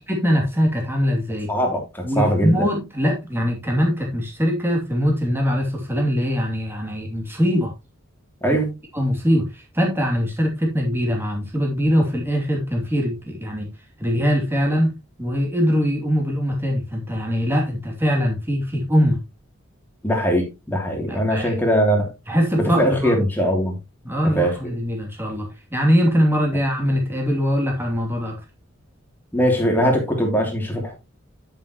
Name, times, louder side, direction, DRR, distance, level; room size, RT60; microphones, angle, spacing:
voice 1, 0.1-1.5 2.0-7.7 8.9-13.7 14.0-14.9 15.2-19.2 21.1-21.5 22.3-23.2 24.0-28.4, equal, 10° right, 2.8 m, -22 dB
voice 2, 1.5-2.6 8.4-8.7 20.0-22.1 22.6-23.7 24.3-24.6 29.3-30.9, equal, 10° left, 3.0 m, -21 dB
11.0 x 7.4 x 3.0 m
head